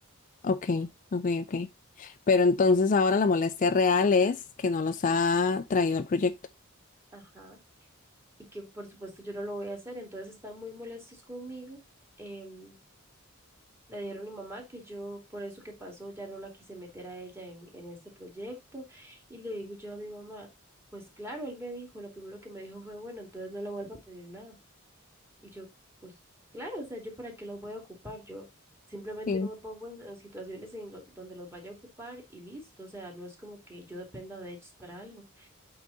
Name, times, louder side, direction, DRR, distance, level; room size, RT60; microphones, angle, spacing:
voice 1, 0.4-1.7 2.0-6.3 29.3-29.5, left 4 dB, 40° left, 0.4 m, -25 dB
voice 2, 7.1-7.6 8.5-11.8 12.2-12.8 13.9-20.5 20.9-24.5 25.4-25.7 26.0-26.1 26.5-28.4 28.9-35.5, right 1 dB, 10° right, 2.5 m, -42 dB
8.2 x 3.9 x 3.9 m
head